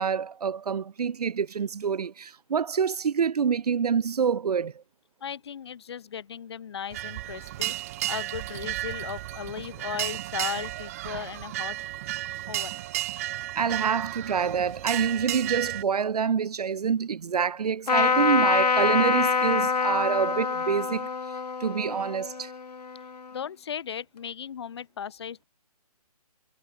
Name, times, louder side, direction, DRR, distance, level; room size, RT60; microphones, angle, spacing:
voice 1, 0.0-4.8 13.6-21.1 21.6-22.5, right 6 dB, 80° right, 0.6 m, -26 dB
voice 2, 5.2-7.8 8.1-11.8 12.5-12.8 23.3-25.4, left 8 dB, 45° left, 0.7 m, -36 dB
sound 1, 6.9-15.8, right 15 dB, 25° right, 1.0 m, -33 dB
Trumpet, 17.9-23.4, left 5 dB, 90° left, 1.0 m, -26 dB
hypercardioid pair, 160°, 20 cm